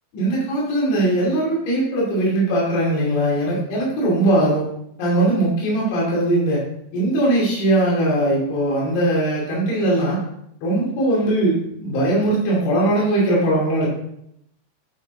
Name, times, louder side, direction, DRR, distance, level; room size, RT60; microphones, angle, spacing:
voice 1, 0.1-4.6 5.0-6.6 6.9-10.2 10.6-13.9, right 1 dB, 80° left, -5 dB, 5.0 m, -20 dB
11.0 x 6.1 x 3.5 m, 0.77 s
omnidirectional pair, 5.3 m